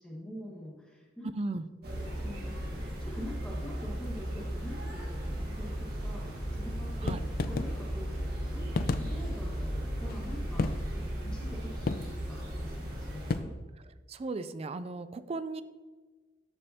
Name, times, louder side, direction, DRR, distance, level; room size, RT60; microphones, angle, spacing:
voice 1, 0.0-1.3 1.8-7.1 7.4-13.5, equal, 5° left, -5 dB, 1.5 m, -45 dB
voice 2, 1.2-1.6 7.0-7.2 14.1-15.6, right 3 dB, 35° right, 13 dB, 0.3 m, -36 dB
sound 1, 1.8-13.4, equal, 55° right, 1.8 m, -36 dB
sound 2, 6.9-13.4, left 4 dB, 50° left, 0.3 m, -35 dB
13.0 x 5.4 x 2.8 m, 1.3 s
head